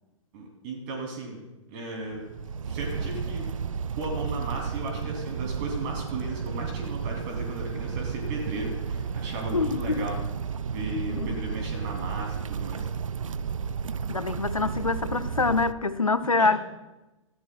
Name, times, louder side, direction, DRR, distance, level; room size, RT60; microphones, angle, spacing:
voice 1, 0.3-1.4 1.7-2.2 2.6-3.4 3.9-10.2 10.7-12.9 16.4-16.6, right 2 dB, 40° right, 2.8 m, -35 dB
sound 1, 2.0-15.7, right 6 dB, 75° right, 0.4 m, -32 dB
voice 2, 9.5-10.0 11.1-11.4 14.1-16.6, left 3 dB, 90° left, 0.6 m, -25 dB
18.0 x 14.5 x 2.3 m
figure-of-eight pair, 105°, 17 cm